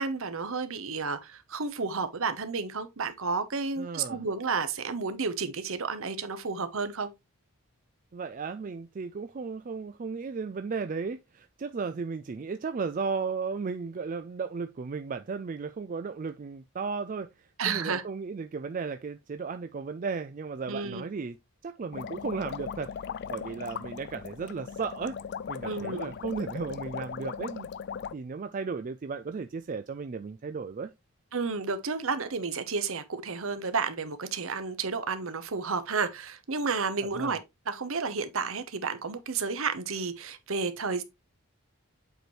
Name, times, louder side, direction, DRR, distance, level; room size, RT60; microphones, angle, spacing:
voice 1, 0.0-7.1 17.6-18.0 20.7-21.0 25.6-26.1 31.3-37.4 37.7-41.0, right 4 dB, 65° right, 1.0 m, -31 dB
voice 2, 3.8-4.2 8.1-21.4 21.6-22.9 23.3-25.2 25.5-27.7 28.1-30.9 37.0-37.4, right 5 dB, 35° right, 0.3 m, -35 dB
sound 1, 21.9-28.1, left 7 dB, 50° left, 0.3 m, -38 dB
7.9 x 4.6 x 3.1 m
head